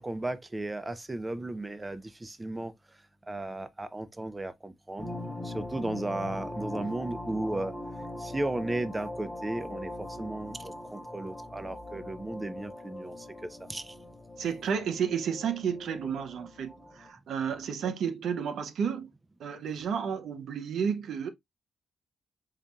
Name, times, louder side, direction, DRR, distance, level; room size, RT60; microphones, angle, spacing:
voice 1, 0.0-2.7 3.3-5.1 5.4-7.7 8.2-13.2 13.4-13.9, right 2 dB, 15° right, 0.4 m, -35 dB
sound 1, 5.0-17.1, left 1 dB, 15° left, 0.8 m, -41 dB
voice 2, 14.4-19.1 19.4-21.3, right 7 dB, 85° right, 0.6 m, -32 dB
4.1 x 3.8 x 2.3 m
cardioid pair, 95°, 0 cm